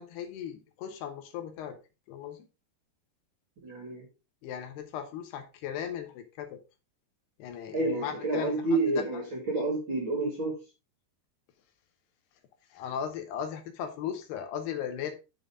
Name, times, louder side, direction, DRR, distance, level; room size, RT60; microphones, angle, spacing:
voice 1, 0.0-1.8 2.1-2.4 4.4-6.6 7.4-8.5 12.7-15.1, left 8 dB, 75° left, 6 dB, 3.2 m, -37 dB
voice 2, 3.6-4.1 7.7-10.6, right 2 dB, 40° right, 0 dB, 2.1 m, -29 dB
9.9 x 5.5 x 3.7 m, 0.29 s
omnidirectional pair, 4.8 m